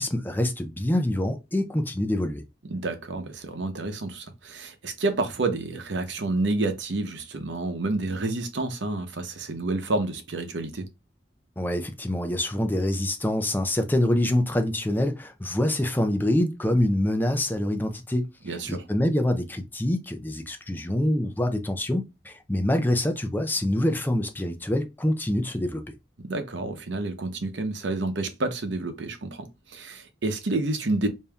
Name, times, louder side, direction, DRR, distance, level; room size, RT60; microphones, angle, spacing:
voice 1, 0.0-2.4 11.6-18.3 18.7-26.0, left 1 dB, 10° left, 0.5 m, -25 dB
voice 2, 2.7-10.9 18.4-18.8 26.2-31.1, right 2 dB, 80° right, 0.8 m, -29 dB
5.2 x 2.7 x 2.3 m
head